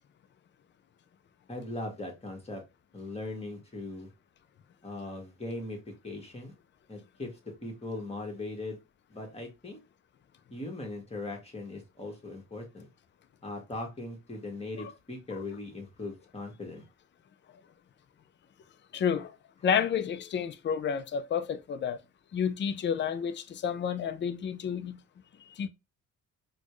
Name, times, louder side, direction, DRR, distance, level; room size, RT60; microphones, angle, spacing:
voice 1, 1.5-2.6 2.9-4.1 4.8-6.5 6.9-8.8 9.1-9.8 10.5-12.9 13.4-16.8, left 2 dB, 20° left, 1.5 m, -39 dB
voice 2, 18.9-19.3 19.6-22.0 22.3-25.0 25.6-25.7, left 7 dB, 40° left, 0.4 m, -30 dB
4.2 x 2.2 x 3.0 m
cardioid pair, 90°, 30 cm